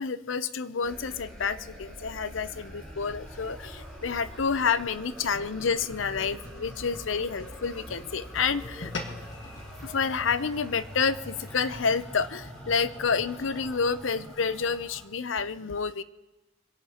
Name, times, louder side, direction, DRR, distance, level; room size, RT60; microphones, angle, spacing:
voice 1, 0.0-8.9 9.8-16.0, left 5 dB, 85° left, 14 dB, 0.7 m, -29 dB
sound 1, 0.8-15.1, equal, 5° left, 4.6 m, -45 dB
sound 2, 6.0-13.6, equal, 20° left, 6.0 m, -49 dB
sound 3, 8.8-13.4, left 2 dB, 65° left, 1.7 m, -43 dB
26.5 x 17.0 x 3.0 m, 1.0 s
head